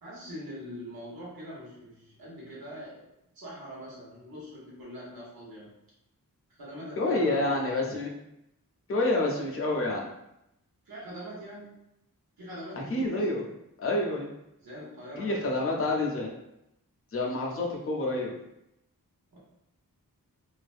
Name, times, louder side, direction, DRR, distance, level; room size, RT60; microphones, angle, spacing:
voice 1, 0.0-3.1 3.3-5.7 6.6-7.8 10.8-11.7 12.4-13.5 14.6-16.1 19.3-19.4, equal, 85° right, -7 dB, 1.0 m, -43 dB
voice 2, 7.0-8.1 8.9-10.1 12.9-13.4 13.8-14.3 15.2-16.3 17.1-18.3, left 2 dB, 40° left, -1 dB, 0.5 m, -28 dB
2.5 x 2.1 x 2.4 m, 0.84 s
wide cardioid pair, 110°, 35 cm